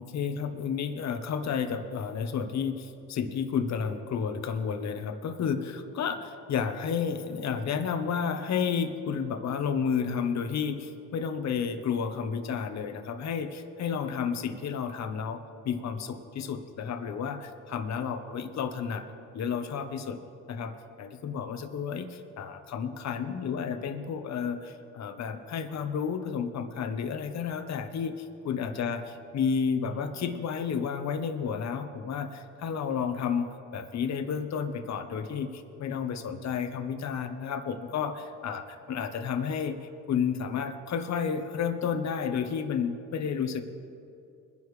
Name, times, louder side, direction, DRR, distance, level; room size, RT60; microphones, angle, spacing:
voice 1, 0.0-19.1 19.3-20.2 20.5-20.7 21.0-29.0 29.3-38.6 38.9-39.8 40.1-43.6, left 6 dB, 65° left, 8 dB, 1.1 m, -31 dB
22.0 x 10.5 x 3.3 m, 2.6 s
cardioid pair, 90°, 30 cm